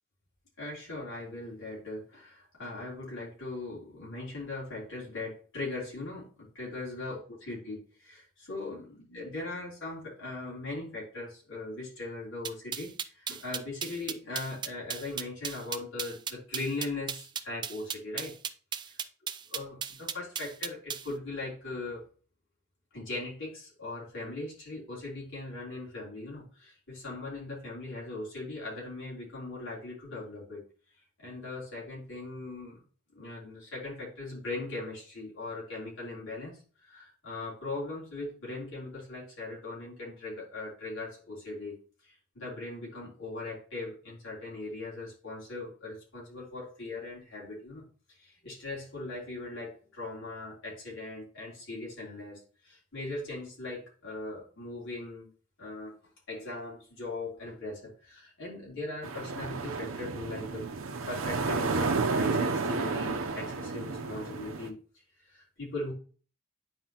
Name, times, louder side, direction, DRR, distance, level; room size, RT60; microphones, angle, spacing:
voice 1, 0.6-18.3 19.5-22.0 22.9-30.6 31.2-32.8 33.1-41.8 42.0-55.3 55.6-55.9 56.3-64.8 65.2-65.9, left 2 dB, 65° left, -5 dB, 3.4 m, -39 dB
sound 1, 12.4-21.1, right 7 dB, 20° right, 0.4 m, -36 dB
sound 2, 59.0-64.7, right 4 dB, 65° right, 0.7 m, -31 dB
9.7 x 4.5 x 2.9 m, 0.40 s
head